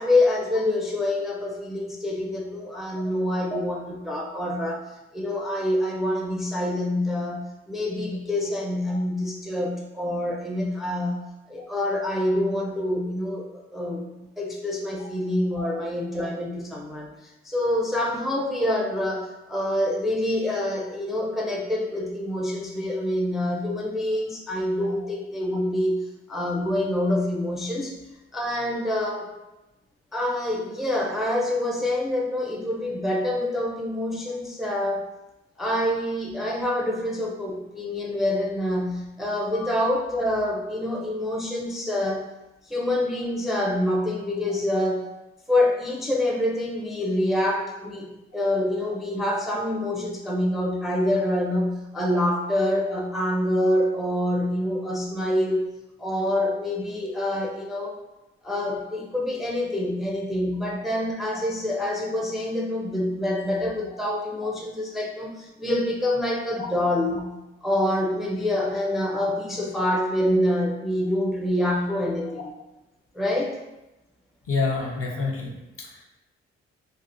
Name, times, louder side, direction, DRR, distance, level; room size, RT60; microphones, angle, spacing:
voice 1, 0.0-11.2 11.5-27.9 28.3-29.3 30.1-35.1 35.6-42.3 42.6-45.1 45.5-55.7 56.0-58.0 58.4-67.3 67.6-72.5 73.1-73.6, left 1 dB, ahead, -2 dB, 0.5 m, -26 dB
voice 2, 74.5-75.9, left 4 dB, 50° left, -1 dB, 0.8 m, -28 dB
3.4 x 2.0 x 2.5 m, 0.98 s
hypercardioid pair, 45°, 30 cm